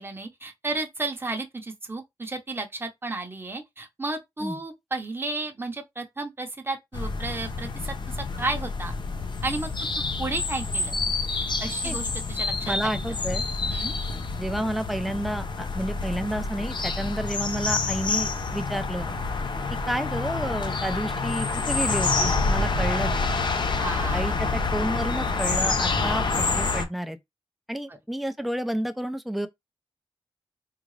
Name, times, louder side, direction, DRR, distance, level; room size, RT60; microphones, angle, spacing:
voice 1, 0.0-8.9 9.4-9.7 10.2-10.9 11.6-13.0 13.7-13.9 23.8-24.6 27.9-28.0, right 2 dB, 25° right, 0.9 m, -33 dB
sound 1, 6.9-26.8, left 3 dB, 50° left, 0.7 m, -27 dB
voice 2, 12.7-13.4 14.4-19.1 19.9-23.1 24.1-27.2 27.7-29.5, right 1 dB, ahead, 0.5 m, -30 dB
3.7 x 2.4 x 3.2 m
wide cardioid pair, 85°, 10 cm